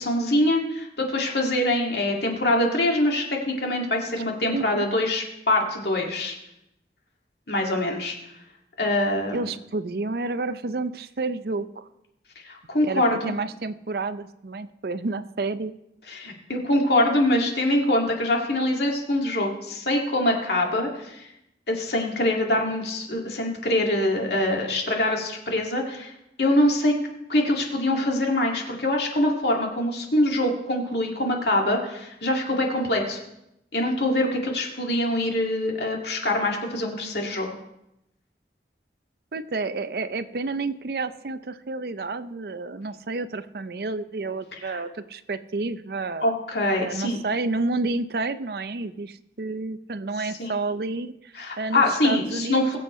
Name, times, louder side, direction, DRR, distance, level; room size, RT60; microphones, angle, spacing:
voice 1, 0.0-6.4 7.5-8.2 8.8-9.5 12.4-13.3 16.1-21.3 21.7-26.1 26.4-26.9 27.3-33.2 33.7-37.5 44.6-44.8 46.2-47.2 50.4-50.5 51.4-52.8, left 1 dB, 70° left, 0 dB, 2.2 m, -24 dB
voice 2, 4.5-4.8 9.3-11.9 12.8-15.7 39.3-46.3 46.8-52.6, right 3 dB, 60° right, 13 dB, 0.5 m, -30 dB
21.5 x 7.8 x 3.2 m, 0.85 s
head